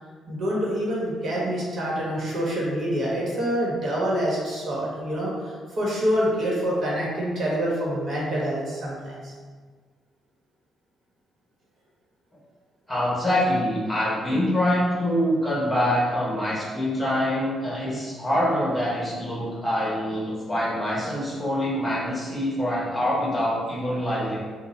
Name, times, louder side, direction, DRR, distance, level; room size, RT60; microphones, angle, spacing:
voice 1, 0.3-9.3, equal, 55° right, -5 dB, 1.3 m, -26 dB
voice 2, 12.9-24.4, equal, 20° left, -6 dB, 1.3 m, -25 dB
3.8 x 2.4 x 4.3 m, 1.5 s
cardioid pair, 90°, 0 cm